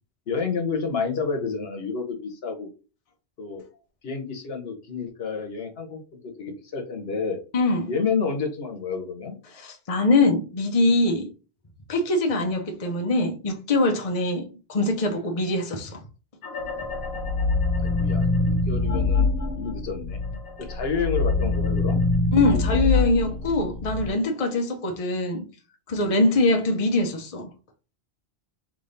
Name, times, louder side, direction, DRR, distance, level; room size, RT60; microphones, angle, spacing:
voice 1, 0.3-2.7 3.4-3.6 4.0-7.4 7.9-9.4 17.8-19.3 19.6-20.2 20.7-22.0, left 5 dB, 65° left, 1.2 m, -29 dB
voice 2, 7.5-7.9 9.5-11.3 11.9-16.0 22.3-25.5 25.9-27.5, left 2 dB, 35° left, 0.8 m, -23 dB
sound 1, 16.4-20.3 20.7-24.1, left 3 dB, 90° left, 1.0 m, -24 dB
3.4 x 3.4 x 3.9 m
omnidirectional pair, 1.1 m